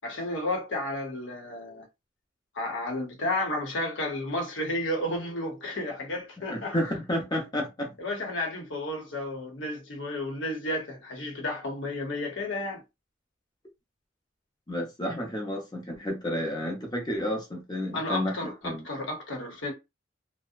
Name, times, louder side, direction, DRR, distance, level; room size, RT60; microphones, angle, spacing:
voice 1, 0.0-1.9 2.5-7.0 8.0-12.8 17.9-19.7, left 1 dB, 75° left, 0.9 m, -32 dB
voice 2, 6.5-7.9 14.7-18.8, equal, 20° left, 0.7 m, -31 dB
2.7 x 2.1 x 2.4 m
head